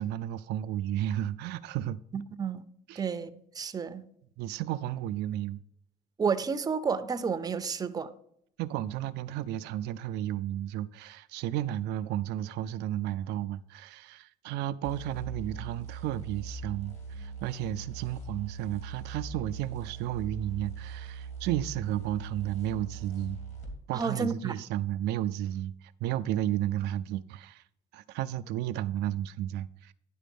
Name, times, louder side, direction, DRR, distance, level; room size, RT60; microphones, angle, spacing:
voice 1, 0.0-2.0 2.9-3.0 4.4-5.6 8.6-23.4 23.9-27.6 27.9-29.9, right 12 dB, 85° right, 0.4 m, -33 dB
voice 2, 2.1-2.6 3.0-4.0 6.2-8.1 23.9-24.6, right 5 dB, 20° right, 0.6 m, -31 dB
sound 1, 14.8-23.8, right 4 dB, 40° left, 2.9 m, -41 dB
10.0 x 4.2 x 5.3 m
cardioid pair, 110°, 17 cm